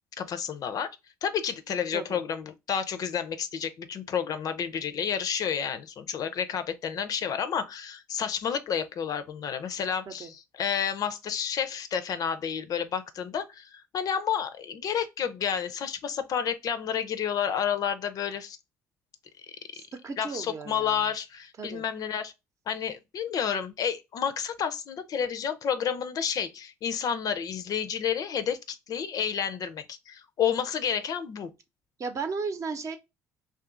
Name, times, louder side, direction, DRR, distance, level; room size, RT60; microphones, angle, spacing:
voice 1, 0.2-0.9 1.2-18.6 20.2-22.3 22.7-31.5, left 8 dB, 55° left, 0.5 m, -30 dB
voice 2, 19.7-21.0 21.6-21.8 32.0-33.0, right 4 dB, 45° right, 0.7 m, -35 dB
2.6 x 2.4 x 3.6 m
hypercardioid pair, 60°, 8 cm